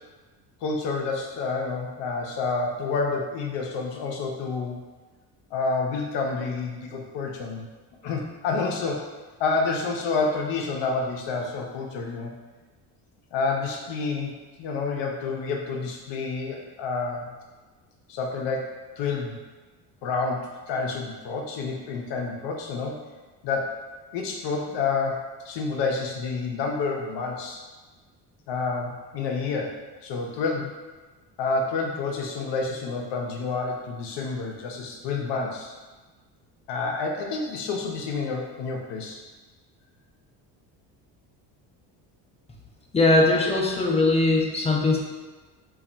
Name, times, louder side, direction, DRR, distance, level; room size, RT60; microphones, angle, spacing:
voice 1, 0.6-4.8 5.5-7.7 8.0-9.0 9.4-12.3 13.3-14.3 14.6-17.3 18.1-19.4 20.0-23.0 23.4-23.8 24.1-27.6 28.5-30.8 31.4-35.8 36.7-39.2, left 4 dB, 65° left, 0 dB, 0.6 m, -29 dB
voice 2, 42.9-45.0, left 2 dB, 15° left, -1 dB, 0.4 m, -20 dB
2.3 x 2.1 x 3.8 m, 1.3 s
supercardioid pair, 75°, 46 cm